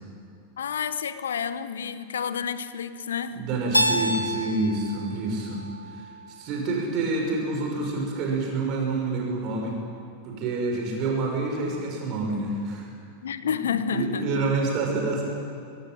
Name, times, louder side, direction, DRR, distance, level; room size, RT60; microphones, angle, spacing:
voice 1, 0.6-3.4 13.2-14.5, left 7 dB, 65° left, 13 dB, 1.0 m, -30 dB
voice 2, 3.3-9.7 10.2-12.9 13.4-13.6 13.9-15.2, right 3 dB, 40° right, 0 dB, 6.2 m, -28 dB
Keyboard (musical), 3.7-6.6, equal, 85° left, 1.3 m, -28 dB
24.0 x 16.0 x 9.1 m, 2.4 s
figure-of-eight pair, 90°, 0 cm